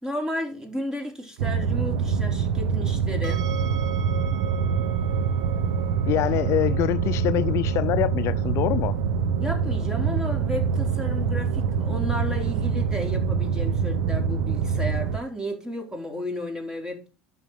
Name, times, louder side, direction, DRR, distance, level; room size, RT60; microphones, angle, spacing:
voice 1, 0.0-3.5 9.4-17.1, left 1 dB, 10° right, 4.1 m, -33 dB
sound 1, 1.4-15.2, right 6 dB, 80° right, 1.0 m, -25 dB
sound 2, 3.2-16.2, right 12 dB, 60° right, 1.8 m, -42 dB
voice 2, 6.1-9.0, left 14 dB, 55° left, 0.6 m, -25 dB
11.0 x 6.7 x 5.3 m
supercardioid pair, 95°, 6 cm